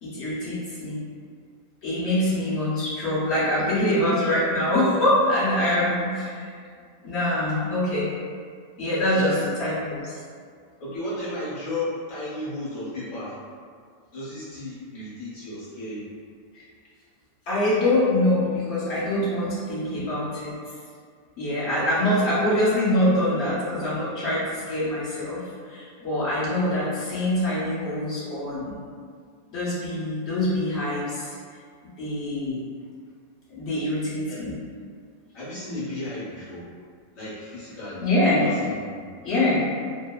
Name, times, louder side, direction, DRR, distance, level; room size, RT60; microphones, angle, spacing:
voice 1, 0.0-1.0 1.8-6.5 7.0-8.1 8.8-9.3 9.6-10.1 17.5-20.5 21.4-28.8 29.5-31.3 32.0-32.6 33.5-34.5 38.0-38.5 39.2-39.7, left 1 dB, 85° left, -10 dB, 0.5 m, -24 dB
voice 2, 9.0-9.4 10.8-13.4 14.1-16.1 34.3-34.4 35.3-36.7 37.1-38.0 38.4-38.7 39.0-39.1, left 2 dB, 55° left, -11 dB, 1.2 m, -34 dB
3.0 x 2.0 x 2.2 m, 2.1 s
omnidirectional pair, 1.9 m